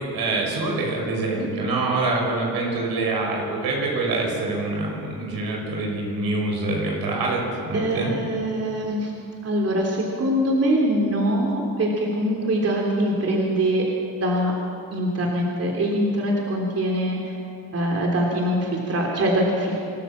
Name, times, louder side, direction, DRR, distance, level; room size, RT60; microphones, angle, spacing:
voice 1, 0.1-8.1, right 2 dB, 80° right, -1 dB, 5.9 m, -25 dB
voice 2, 7.7-9.1 9.4-13.8 14.2-14.5 14.9-17.4 17.7-19.8, right 1 dB, 40° right, -1 dB, 3.4 m, -23 dB
27.0 x 13.5 x 7.5 m, 2.6 s
cardioid pair, 105°, 36 cm